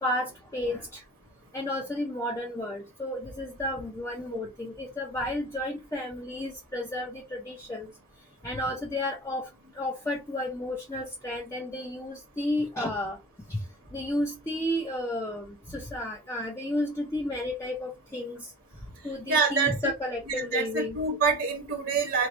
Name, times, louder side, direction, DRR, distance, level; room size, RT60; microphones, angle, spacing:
voice 1, 0.0-1.0 1.5-7.9 8.4-9.5 9.8-13.2 13.5-13.6 13.9-18.5 19.0-21.0, left 1 dB, 15° left, 0.6 m, -32 dB
voice 2, 19.3-19.8 20.3-22.3, right 4 dB, 55° right, 1.0 m, -26 dB
4.6 x 2.0 x 3.9 m
head